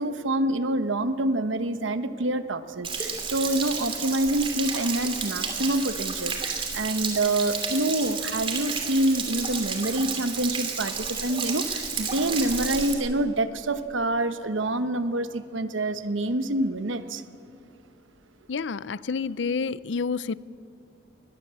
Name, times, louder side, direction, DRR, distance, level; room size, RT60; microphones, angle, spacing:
voice 1, 0.0-17.2, right 1 dB, 85° right, 11 dB, 1.1 m, -27 dB
Stream / Splash splatter / Trickle dribble, 2.8-12.9, right 5 dB, 30° right, 2.9 m, -31 dB
voice 2, 18.5-20.3, left 5 dB, 70° left, 19 dB, 0.5 m, -29 dB
22.0 x 21.0 x 7.6 m, 2.6 s
head